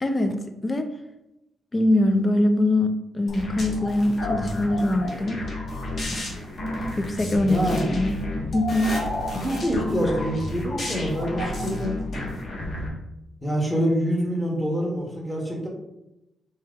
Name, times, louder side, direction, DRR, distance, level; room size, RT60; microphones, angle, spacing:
voice 1, 0.0-0.4 0.6-0.9 1.7-5.4 7.0-8.2 8.5-9.0, left 1 dB, 20° left, 7 dB, 0.3 m, -23 dB
sound 1, 3.3-12.9, left 1 dB, 40° left, 0.9 m, -31 dB
voice 2, 7.4-8.0 9.3-12.0 13.4-15.7, equal, ahead, -2 dB, 0.9 m, -26 dB
4.3 x 2.8 x 3.6 m, 0.90 s
wide cardioid pair, 170°, 0 cm